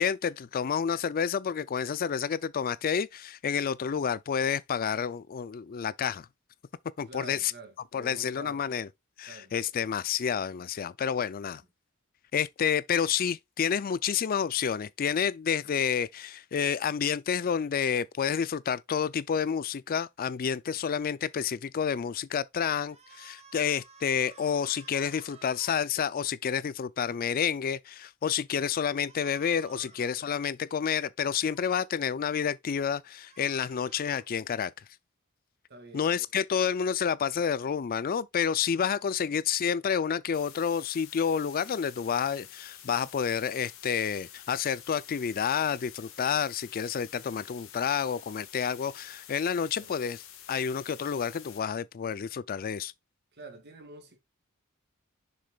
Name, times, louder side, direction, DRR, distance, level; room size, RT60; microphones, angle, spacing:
voice 1, 0.0-6.3 7.0-7.5 7.9-8.9 9.2-11.6 12.3-34.7 35.9-50.2 50.5-52.9, left 7 dB, 40° left, 0.4 m, -29 dB
voice 2, 7.1-8.7 9.3-9.5 11.5-11.6 20.7-20.8 29.8-29.9 35.7-36.1 49.8-50.0 53.3-54.2, right 2 dB, 50° right, 2.0 m, -48 dB
sound 1, 22.8-25.8 29.0-30.2 31.3-31.9 33.0-34.3, right 5 dB, 30° right, 1.5 m, -54 dB
sound 2, 40.3-51.6, left 10 dB, 70° left, 1.5 m, -49 dB
6.7 x 6.6 x 2.3 m
head